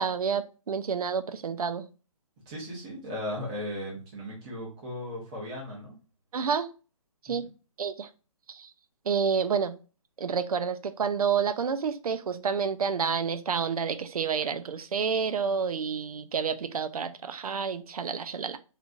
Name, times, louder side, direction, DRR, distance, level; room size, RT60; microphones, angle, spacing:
voice 1, 0.0-1.9 6.3-6.7 7.2-7.4 7.8-8.1 8.5-8.7 9.1-9.8 10.2-18.6, right 6 dB, 90° right, 0.4 m, -29 dB
voice 2, 2.5-6.0 7.3-7.5, left 1 dB, 10° right, 0.5 m, -37 dB
3.1 x 2.4 x 2.4 m
hypercardioid pair, 170°, 18 cm